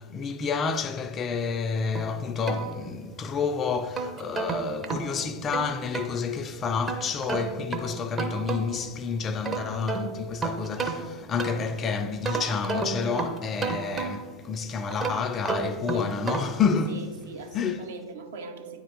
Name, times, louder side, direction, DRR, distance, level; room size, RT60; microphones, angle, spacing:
voice 1, 0.0-17.0 17.5-17.8, left 5 dB, 25° left, 0.3 m, -29 dB
sound 1, 2.0-3.3 3.7-6.2 6.9-8.9 9.3-11.8 12.2-14.4 14.9-16.7, right 4 dB, 20° right, 0.6 m, -32 dB
voice 2, 15.9-16.2 16.9-18.8, right 4 dB, 60° right, 0.7 m, -40 dB
9.4 x 3.2 x 3.7 m
figure-of-eight pair, 90°, 0 cm